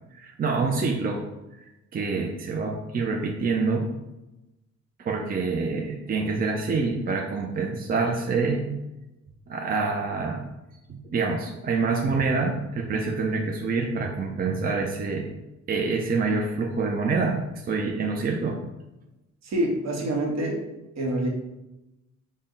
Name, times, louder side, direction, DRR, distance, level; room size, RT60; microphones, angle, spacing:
voice 1, 0.1-1.2 1.6-3.9 5.0-8.7 9.5-10.4 10.9-15.3 15.7-18.6, right 4 dB, 30° right, 1 dB, 0.4 m, -26 dB
voice 2, 19.4-20.7 21.0-21.3, right 1 dB, 60° right, 1 dB, 1.0 m, -26 dB
4.0 x 2.1 x 3.7 m, 0.98 s
cardioid pair, 90°, 30 cm